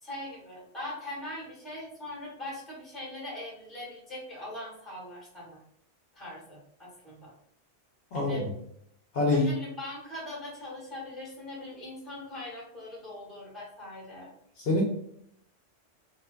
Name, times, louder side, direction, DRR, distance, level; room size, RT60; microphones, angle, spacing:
voice 1, 0.0-5.6 6.1-7.3 8.1-8.4 9.3-14.3, left 1 dB, ahead, -5 dB, 0.8 m, -41 dB
voice 2, 8.1-8.5 9.1-9.5 14.6-14.8, left 2 dB, 65° left, -2 dB, 0.7 m, -25 dB
2.5 x 2.2 x 2.3 m, 0.71 s
omnidirectional pair, 1.2 m